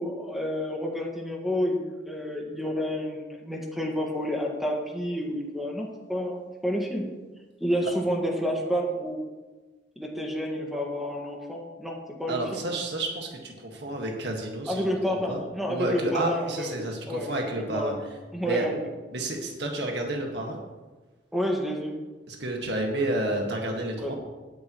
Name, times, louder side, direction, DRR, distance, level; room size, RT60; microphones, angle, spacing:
voice 1, 0.0-6.4 6.6-7.0 7.6-9.2 10.0-12.6 14.7-16.8 17.1-18.0 18.3-18.8 21.3-22.0 24.0-24.1, equal, ahead, -1 dB, 1.8 m, -29 dB
voice 2, 12.3-14.8 15.3-15.4 15.7-17.9 18.4-18.7 19.1-20.6 22.3-24.1, right 1 dB, 65° right, 1 dB, 1.8 m, -30 dB
17.0 x 10.0 x 3.1 m, 1.3 s
head